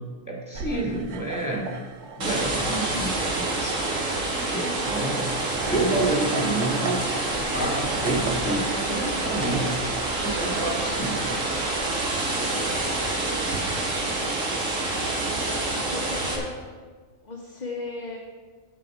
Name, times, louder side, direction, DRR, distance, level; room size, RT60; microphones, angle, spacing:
voice 1, 0.3-1.7 2.2-3.9 4.3-5.3 5.7-7.0 7.3-9.8 10.2-11.4, right 2 dB, 15° left, -2 dB, 2.2 m, -29 dB
sound 1, 0.5-12.1, right 4 dB, 65° right, 1.1 m, -40 dB
sound 2, 2.2-16.4, right 2 dB, 85° right, 2.0 m, -27 dB
voice 2, 15.7-16.5 17.2-18.2, left 3 dB, 35° left, -1 dB, 1.1 m, -35 dB
15.0 x 5.3 x 4.8 m, 1.5 s
omnidirectional pair, 1.3 m